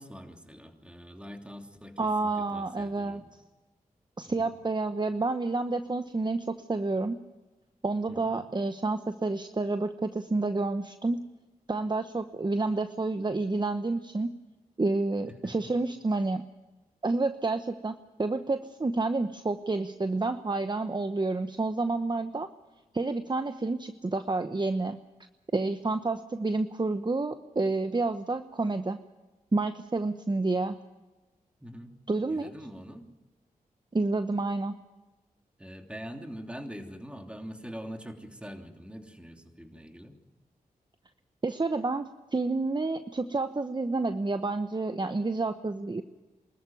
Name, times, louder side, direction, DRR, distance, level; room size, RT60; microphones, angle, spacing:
voice 1, 0.0-3.3 4.3-4.5 8.1-8.4 15.3-15.5 31.6-31.9 32.3-33.1 35.6-40.2, equal, 5° right, 4 dB, 3.1 m, -44 dB
voice 2, 2.0-3.2 4.2-7.2 7.8-11.2 11.7-14.3 14.8-16.4 17.0-22.5 22.9-25.0 25.5-29.0 29.5-30.8 32.1-32.5 33.9-34.8 41.4-46.0, right 3 dB, 30° right, 9 dB, 1.0 m, -29 dB
24.5 x 14.0 x 9.3 m, 1.2 s
cardioid pair, 50°, 15 cm